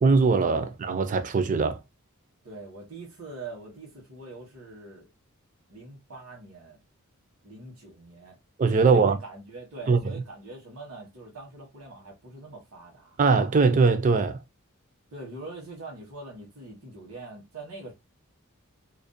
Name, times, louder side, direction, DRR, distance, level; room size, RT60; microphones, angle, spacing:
voice 1, 0.0-1.8 8.6-9.2 9.9-10.0 13.2-14.4, right 4 dB, 35° right, 0.3 m, -21 dB
voice 2, 2.4-5.1 5.7-6.8 7.4-8.4 8.8-13.2 15.1-17.9, right 3 dB, 85° right, 1.0 m, -43 dB
2.5 x 2.0 x 2.5 m
head